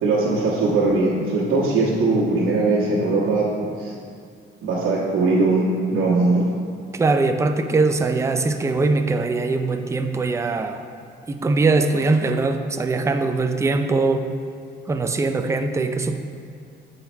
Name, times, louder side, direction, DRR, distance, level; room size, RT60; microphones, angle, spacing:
voice 1, 0.0-3.5 3.8-3.9 4.6-6.5, right 3 dB, 85° right, -9 dB, 1.2 m, -20 dB
voice 2, 6.9-10.8 11.3-14.3 14.9-16.2, right 3 dB, 15° right, 7 dB, 0.4 m, -21 dB
8.3 x 4.0 x 4.3 m, 2.2 s
cardioid pair, 90°, 20 cm